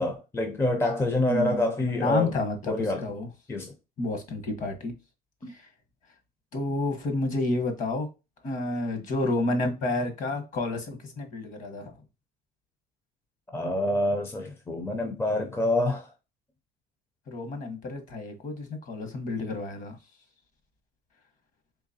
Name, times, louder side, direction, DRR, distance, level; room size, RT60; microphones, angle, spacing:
voice 1, 0.0-2.4 2.7-3.0 3.5-3.7 5.4-5.5 13.5-16.1, left 1 dB, 15° left, 0.4 m, -27 dB
voice 2, 1.2-3.3 4.0-4.9 5.5-5.7 6.5-8.1 8.4-12.0 17.3-20.0, left 2 dB, 45° left, 1.1 m, -30 dB
3.8 x 3.1 x 2.6 m
cardioid pair, 130°, 19 cm